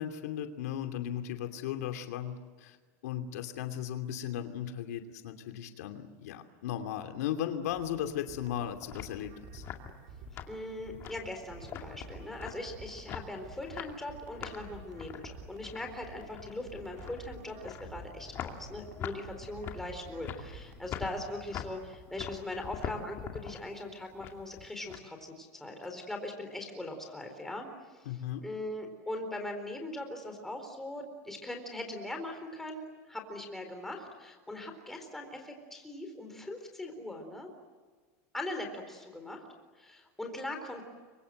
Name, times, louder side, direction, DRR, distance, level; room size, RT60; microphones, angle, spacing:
voice 1, 0.0-2.4 2.6-2.8 3.0-9.6 28.1-28.4, left 10 dB, 90° left, 6 dB, 2.7 m, -36 dB
sound 1, 7.7-21.3, right 5 dB, 50° right, 3.8 m, -51 dB
sound 2, 8.4-25.0, left 9 dB, 30° left, 2.4 m, -44 dB
voice 2, 10.5-27.7 27.9-28.1 28.4-37.5 38.3-39.4 39.8-40.8, left 1 dB, 5° left, 3 dB, 4.1 m, -40 dB
29.5 x 24.5 x 7.8 m, 1.4 s
supercardioid pair, 175°, 8 cm